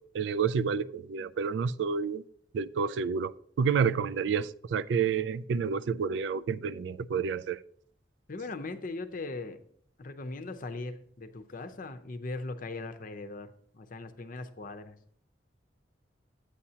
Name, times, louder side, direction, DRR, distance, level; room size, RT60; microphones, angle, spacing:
voice 1, 0.1-2.2 2.5-7.6, right 6 dB, 75° right, 0.3 m, -29 dB
voice 2, 8.3-9.6 10.0-15.0, left 3 dB, 50° left, 0.6 m, -39 dB
9.8 x 8.4 x 2.8 m
head